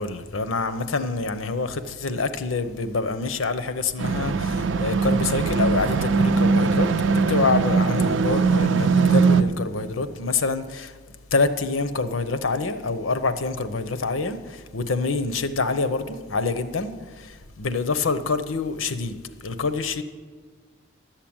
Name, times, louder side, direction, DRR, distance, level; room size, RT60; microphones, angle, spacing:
voice 1, 0.0-11.0 11.3-20.0, left 3 dB, 85° left, 0.8 m, -26 dB
sound 1, 4.0-9.4, right 4 dB, 70° right, 0.5 m, -21 dB
11.5 x 7.4 x 8.7 m
head